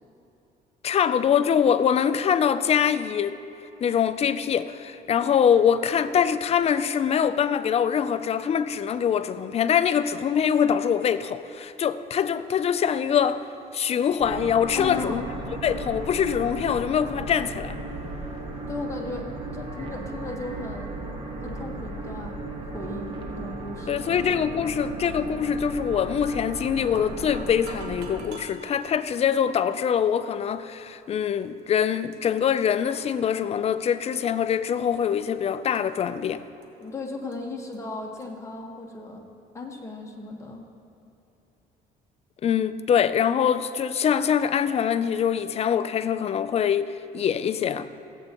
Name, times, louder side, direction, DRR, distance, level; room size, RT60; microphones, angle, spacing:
voice 1, 0.8-3.4 3.8-13.4 13.7-15.2 15.6-17.8 23.9-36.4 42.4-47.9, left 8 dB, 40° left, 0.4 m, -24 dB
sound 1, 14.2-28.2, right 2 dB, 30° right, 1.4 m, -35 dB
voice 2, 14.7-15.2 18.7-20.9 21.4-22.4 22.6-24.0 36.8-39.2 39.5-40.7, left 3 dB, 15° left, 1.4 m, -36 dB
sound 2, 26.2-26.5 26.8-29.0 29.7-29.9 30.7-30.8 31.6-31.7 31.9-32.6 32.9-34.5 34.8-35.3 35.7-36.9 37.3-37.4 37.7-37.8 38.2-38.3, right 4 dB, 90° right, 1.1 m, -47 dB
16.5 x 8.0 x 3.0 m
cardioid pair, 110°, 17 cm